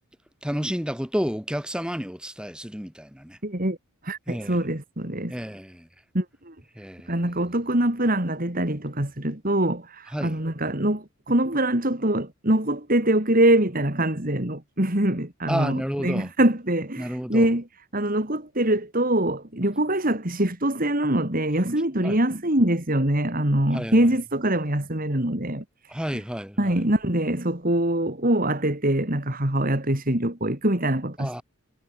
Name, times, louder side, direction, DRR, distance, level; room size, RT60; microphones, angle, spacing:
voice 1, 0.4-3.4 4.3-4.6 5.3-5.9 6.8-7.2 10.1-10.4 15.5-16.3 17.0-17.5 22.0-22.2 23.7-24.2 25.9-26.8 31.2-31.4, equal, 5° right, 5.3 m, -31 dB
voice 2, 3.4-3.8 4.0-5.3 6.1-6.5 7.1-17.6 17.9-25.6 26.1-26.2 26.6-31.4, right 1 dB, 40° right, 3.2 m, -24 dB
head